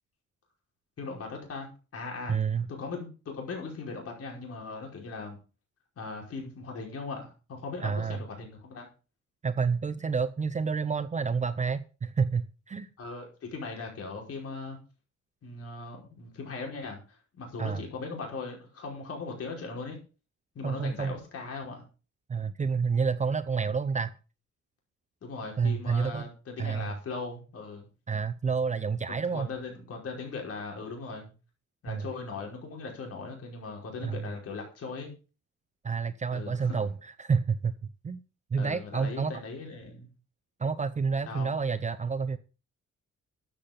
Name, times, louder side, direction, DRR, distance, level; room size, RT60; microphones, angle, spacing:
voice 1, 1.0-2.4 2.8-5.4 6.0-8.9 13.0-14.8 15.4-20.0 20.6-21.8 25.2-27.9 29.2-31.3 31.8-35.1 36.3-36.8 38.6-40.1 41.3-41.5, left 4 dB, 55° left, 5.3 m, -39 dB
voice 2, 2.3-2.7 7.8-8.2 9.4-12.9 17.6-17.8 20.6-21.1 22.3-24.1 25.6-26.3 26.6-26.9 28.1-29.5 31.9-32.1 34.0-34.3 35.8-38.2 38.5-39.3 40.6-42.4, right 5 dB, 25° right, 0.6 m, -29 dB
13.5 x 7.7 x 5.3 m
wide cardioid pair, 170°, 29 cm